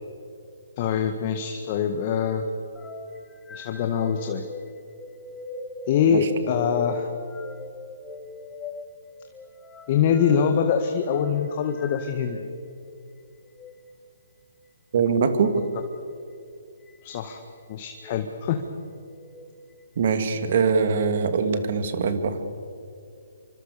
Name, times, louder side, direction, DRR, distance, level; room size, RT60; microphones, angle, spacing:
voice 1, 0.8-2.4 3.5-4.5 5.9-7.1 9.9-12.5 17.0-17.4 17.7-18.7, left 7 dB, 40° left, 6 dB, 1.8 m, -24 dB
sound 1, 2.8-12.7 13.5-13.7 15.7-16.1 16.9-17.4 17.9-18.2 19.0-19.5 20.0-21.0, left 4 dB, 10° left, 2.1 m, -40 dB
voice 2, 14.9-15.5 20.0-22.4, right 5 dB, 55° right, 8 dB, 2.8 m, -22 dB
26.5 x 25.5 x 6.9 m, 2.4 s
hypercardioid pair, 145°, 0 cm